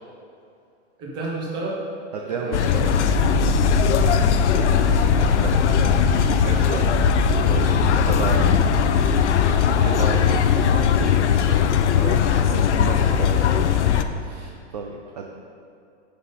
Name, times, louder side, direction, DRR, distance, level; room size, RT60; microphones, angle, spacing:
voice 1, 1.0-1.8 2.2-2.9 3.9-4.8 5.1-5.3 6.6-7.1 9.8-10.4 12.7-12.9 13.6-13.7, right 2 dB, 10° right, -4 dB, 0.9 m, -34 dB
voice 2, 2.1-2.9 5.1-7.0 7.4-9.3 9.8-10.3 10.7-13.6 14.2-15.3, right 4 dB, 35° right, 1 dB, 0.5 m, -33 dB
HK Outdoor Restaurant, 2.5-14.0, left 6 dB, 70° left, 0.7 m, -19 dB
12.0 x 5.5 x 4.0 m, 2.6 s
supercardioid pair, 180°, 36 cm